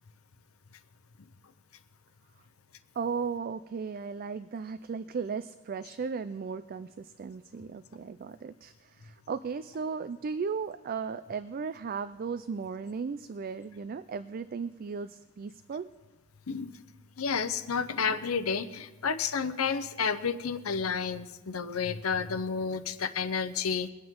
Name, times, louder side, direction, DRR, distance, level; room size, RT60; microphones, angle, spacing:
voice 1, 3.0-15.9, right 5 dB, 45° right, 12 dB, 0.4 m, -36 dB
voice 2, 17.2-23.9, left 6 dB, 85° left, 10 dB, 0.8 m, -31 dB
22.0 x 8.6 x 3.7 m, 1.2 s
head